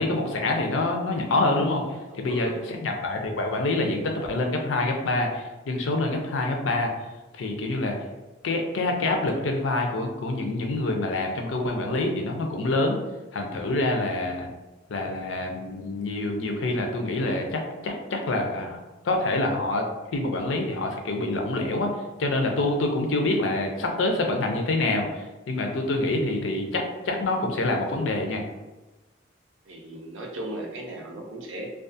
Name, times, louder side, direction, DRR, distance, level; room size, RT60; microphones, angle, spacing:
voice 1, 0.0-6.9 7.3-8.0 8.4-13.0 13.3-14.5 14.9-19.9 20.1-21.9 22.2-28.4, left 2 dB, 85° left, 3 dB, 0.5 m, -26 dB
voice 2, 2.1-2.7 29.6-31.7, right 1 dB, 90° right, 1 dB, 0.5 m, -37 dB
2.3 x 2.3 x 2.6 m, 1.1 s
head